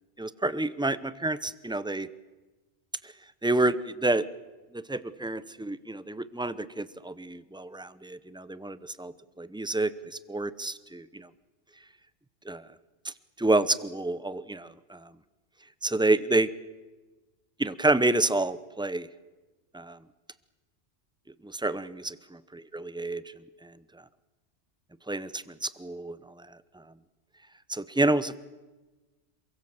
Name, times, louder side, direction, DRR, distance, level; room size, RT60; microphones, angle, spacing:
voice 1, 0.2-2.1 3.0-3.1 3.4-4.2 4.7-11.3 12.5-12.7 13.0-15.1 15.8-16.5 17.6-19.1 19.7-20.0 21.4-23.2 23.6-23.8 25.1-26.8 27.7-28.4, right 2 dB, 5° right, 15 dB, 0.4 m, -29 dB
27.5 x 22.5 x 7.3 m, 1.2 s
omnidirectional pair, 1.3 m